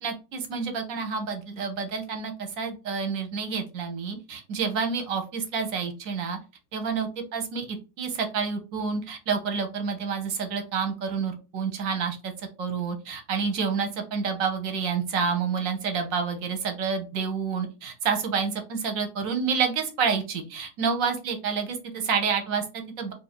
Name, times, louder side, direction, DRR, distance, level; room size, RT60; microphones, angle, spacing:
voice 1, 0.0-6.4 6.7-23.1, right 5 dB, 60° right, 5 dB, 1.0 m, -29 dB
2.8 x 2.6 x 4.1 m, 0.32 s
omnidirectional pair, 1.8 m